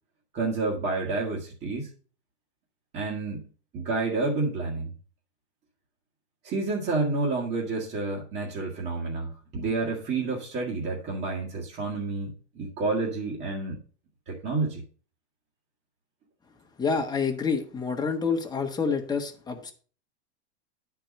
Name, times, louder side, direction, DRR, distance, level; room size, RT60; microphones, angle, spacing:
voice 1, 0.3-1.9 2.9-3.4 3.7-4.9 6.4-13.8 14.3-14.8, right 3 dB, 30° right, -4 dB, 1.8 m, -29 dB
voice 2, 16.8-19.7, left 5 dB, 10° left, 3 dB, 1.3 m, -28 dB
9.9 x 4.7 x 5.3 m, 0.41 s
supercardioid pair, 130°, 34 cm